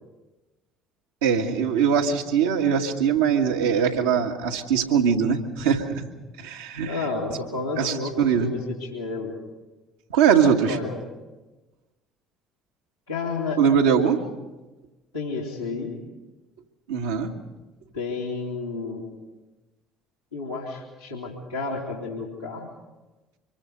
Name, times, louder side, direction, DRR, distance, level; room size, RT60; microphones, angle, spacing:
voice 1, 1.2-6.0 6.4-7.0 7.8-8.5 10.1-10.8 13.6-14.2 16.9-17.3, right 7 dB, 75° right, 1 dB, 1.8 m, -21 dB
voice 2, 6.8-9.3 10.4-11.0 13.1-14.0 15.1-16.0 17.9-19.0 20.3-22.7, left 3 dB, 90° left, -10 dB, 3.0 m, -31 dB
25.0 x 23.5 x 5.3 m, 1.1 s
figure-of-eight pair, 55°, 0 cm